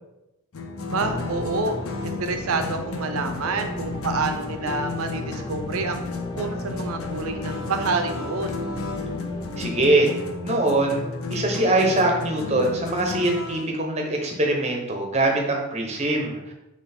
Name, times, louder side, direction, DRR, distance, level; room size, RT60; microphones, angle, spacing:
sound 1, 0.5-13.7, left 3 dB, 75° left, 0.6 m, -33 dB
sound 2, 0.9-9.9, left 2 dB, 20° left, 0.5 m, -37 dB
voice 1, 0.9-1.8 2.0-6.1 6.3-8.6, right 4 dB, 80° right, 6 dB, 0.5 m, -28 dB
voice 2, 9.6-10.1 10.4-11.0 11.3-16.5, right 2 dB, 30° right, 1 dB, 0.7 m, -22 dB
4.0 x 3.0 x 4.2 m, 0.94 s
head